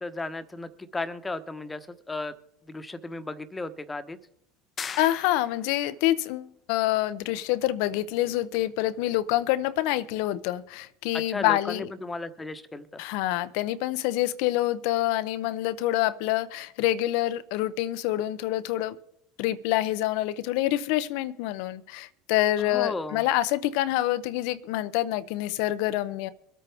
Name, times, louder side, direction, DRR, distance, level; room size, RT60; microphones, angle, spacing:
voice 1, 0.0-2.3 2.6-4.2 11.1-13.0 22.6-23.2, left 2 dB, 15° left, 11 dB, 1.1 m, -35 dB
sound 1, 4.8-5.9, left 6 dB, 35° left, 0.7 m, -38 dB
voice 2, 5.0-11.9 13.0-19.0 19.4-26.3, left 15 dB, 70° left, 16 dB, 0.7 m, -26 dB
24.0 x 8.5 x 3.5 m, 0.79 s
hypercardioid pair, 85°, 0 cm